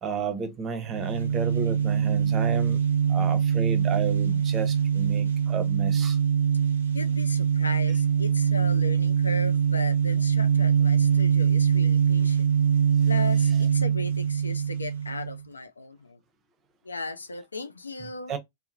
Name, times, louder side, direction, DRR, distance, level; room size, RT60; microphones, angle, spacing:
voice 1, 0.0-2.8 3.1-6.2 7.9-8.0 13.3-13.5 18.0-18.4, right 5 dB, 30° right, 0.6 m, -32 dB
sound 1, 0.9-15.4, right 7 dB, 75° right, 0.5 m, -23 dB
voice 2, 6.9-12.5 13.1-16.2 16.8-18.4, left 3 dB, 75° left, 0.3 m, -37 dB
2.8 x 2.0 x 2.4 m
figure-of-eight pair, 90°, 0 cm